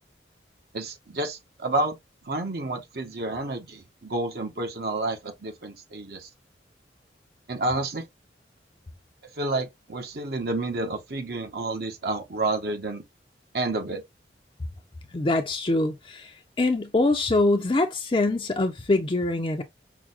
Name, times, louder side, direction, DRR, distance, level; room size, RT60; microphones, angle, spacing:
voice 1, 0.7-1.9 2.2-6.3 7.5-8.0 9.3-13.0 13.5-14.0, right 2 dB, 60° right, 0.9 m, -30 dB
voice 2, 15.1-19.6, left 2 dB, 30° left, 0.5 m, -24 dB
5.9 x 2.2 x 2.4 m
head